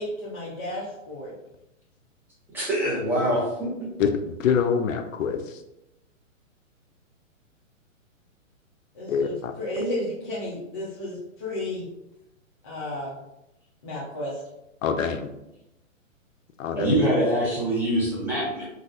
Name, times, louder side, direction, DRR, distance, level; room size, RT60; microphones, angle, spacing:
voice 1, 0.0-1.3 8.9-11.8 12.6-13.1 13.8-14.4, left 1 dB, 20° left, -8 dB, 0.4 m, -32 dB
voice 2, 2.5-3.5 16.7-18.7, right 1 dB, 5° right, -7 dB, 0.7 m, -24 dB
voice 3, 4.0-5.6 9.1-9.5 14.8-15.3 16.6-17.0, left 6 dB, 75° left, 7 dB, 0.5 m, -25 dB
4.0 x 2.3 x 2.4 m, 0.89 s
hypercardioid pair, 140°, 40 cm